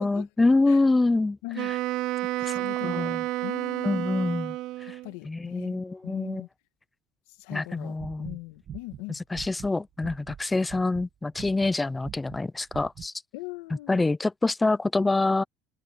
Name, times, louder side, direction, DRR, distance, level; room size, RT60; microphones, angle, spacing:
voice 1, 0.0-1.8 2.4-3.2 3.8-4.6 4.8-5.0 5.2-6.4 7.5-8.4 9.1-13.1 13.9-15.4, left 3 dB, 10° left, 0.4 m, -26 dB
Wind instrument woodwind instrument, 1.5-5.1, right 17 dB, 65° right, 0.3 m, -30 dB
voice 2, 2.4-3.2 3.4-4.1 5.0-6.5 7.4-9.2 13.3-14.0, left 22 dB, 85° left, 1.9 m, -40 dB
sound 1, 8.0-10.4 10.7-11.1 11.3-11.7 12.0-12.4 12.7-13.1, right 9 dB, 40° right, 1.3 m, -42 dB
cardioid pair, 130°, 0 cm